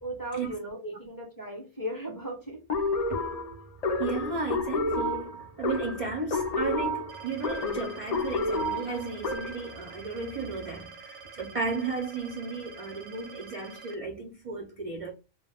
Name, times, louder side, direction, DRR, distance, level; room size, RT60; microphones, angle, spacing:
voice 1, 0.0-2.6 7.8-7.9 8.3-8.5, right 1 dB, 20° left, 0.6 m, -37 dB
sound 1, 2.7-9.7, left 2 dB, 70° left, 0.3 m, -30 dB
voice 2, 4.0-15.1, right 4 dB, 60° right, 0.3 m, -34 dB
sound 2, 7.1-13.9, right 5 dB, 85° right, 1.0 m, -47 dB
2.2 x 2.2 x 3.4 m
omnidirectional pair, 1.3 m